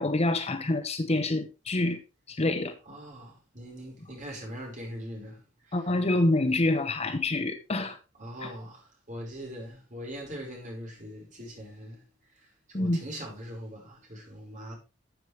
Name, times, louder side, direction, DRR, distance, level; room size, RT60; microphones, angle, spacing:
voice 1, 0.0-2.0 2.3-2.7 5.7-8.0 8.4-8.5 12.7-13.0, left 2 dB, 30° left, 0.9 m, -27 dB
voice 2, 2.8-5.8 8.2-12.0 12.4-14.7, equal, 40° right, 4.9 m, -41 dB
12.5 x 7.6 x 3.3 m
head